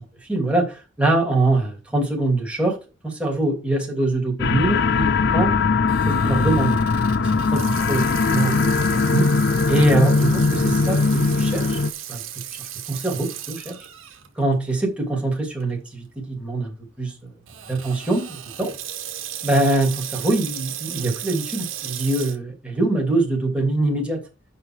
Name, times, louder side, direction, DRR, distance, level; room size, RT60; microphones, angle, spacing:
voice 1, 0.3-2.8 3.0-5.5 6.1-6.8 7.2-9.3 9.7-11.8 12.1-12.2 12.9-13.8 14.3-17.3 17.7-18.7 19.4-24.2, right 2 dB, 5° right, -1 dB, 2.8 m, -23 dB
sound 1, 4.4-11.9, left 4 dB, 55° left, 0.6 m, -20 dB
Water tap faucet / Sink (filling or washing), 5.9-14.3 14.8-14.9 15.6-15.9 17.5-22.4, right 11 dB, 90° right, 1.4 m, -35 dB
8.8 x 5.6 x 4.7 m, 0.31 s
head